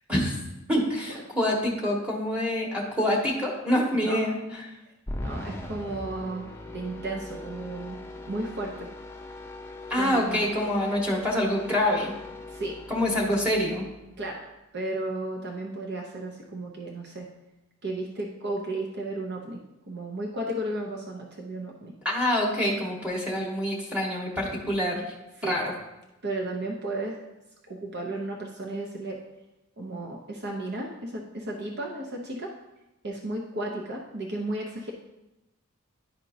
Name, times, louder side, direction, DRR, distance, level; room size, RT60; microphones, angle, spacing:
voice 1, 0.7-4.7 9.9-12.1 12.9-13.8 22.0-25.1 25.4-25.7, left 1 dB, 5° right, -3 dB, 1.4 m, -26 dB
sound 1, 5.1-14.4, left 1 dB, 10° left, 0.6 m, -40 dB
voice 2, 5.2-6.5 6.7-8.0 8.3-8.9 10.0-10.5 12.5-12.7 14.2-14.4 14.7-17.3 17.8-19.6 19.9-21.9 25.4-25.5 26.2-27.2 27.7-29.2 29.8-32.5 33.0-34.9, right 2 dB, 50° right, 0 dB, 0.8 m, -34 dB
11.0 x 4.4 x 2.7 m, 0.96 s
head